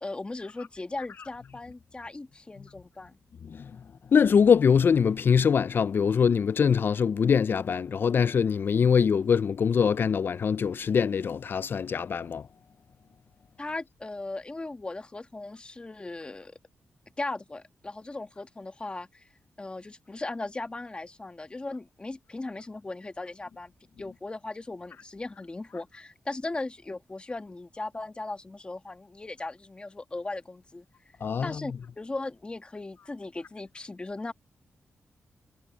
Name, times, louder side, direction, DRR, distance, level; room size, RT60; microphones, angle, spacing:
voice 1, 0.0-3.2 13.6-16.6 17.2-19.3 19.6-23.7 24.0-30.9 31.4-34.3, left 2 dB, 25° left, 1.8 m, -38 dB
voice 2, 4.1-12.4 31.2-31.8, left 6 dB, 50° left, 0.4 m, -23 dB
cardioid pair, 100°, 4 cm